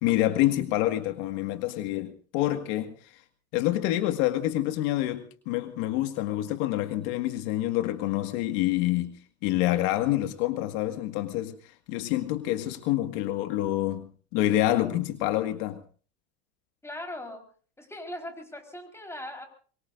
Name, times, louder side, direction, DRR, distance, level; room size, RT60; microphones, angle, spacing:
voice 1, 0.0-3.0 3.5-9.2 9.4-11.6 11.9-15.8, left 14 dB, 70° left, 1.9 m, -27 dB
voice 2, 16.8-17.5 17.8-19.5, left 1 dB, 10° left, 4.4 m, -39 dB
24.0 x 23.5 x 2.6 m
supercardioid pair, 130°, 33 cm